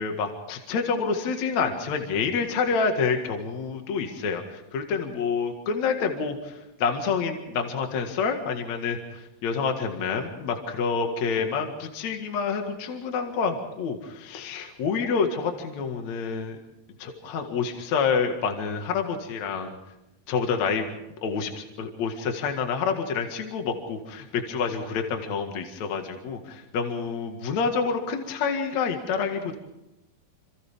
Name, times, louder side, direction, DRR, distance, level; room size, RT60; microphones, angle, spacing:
voice 1, 0.0-16.6 17.0-19.7 20.3-20.9 21.2-29.6, left 5 dB, 55° left, 4 dB, 2.9 m, -28 dB
28.0 x 27.5 x 3.6 m, 0.93 s
omnidirectional pair, 4.1 m